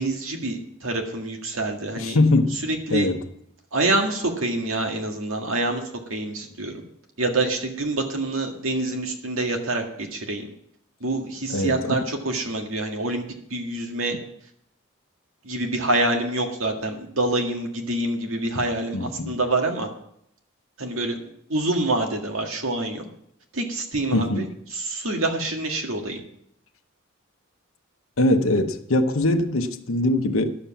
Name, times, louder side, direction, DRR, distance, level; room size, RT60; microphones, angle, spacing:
voice 1, 0.0-2.2 2.7-3.1 3.7-5.8 6.1-6.7 7.2-10.5 11.0-13.2 13.5-14.2 15.4-19.9 20.8-21.2 21.5-23.1 23.5-24.5 24.7-26.2, right 2 dB, 75° right, 1.9 m, -26 dB
voice 2, 2.0-2.6 2.9-3.2 11.5-11.9 18.9-19.4 24.1-24.4 28.2-30.5, left 2 dB, 75° left, 1.0 m, -22 dB
11.5 x 7.4 x 7.2 m
head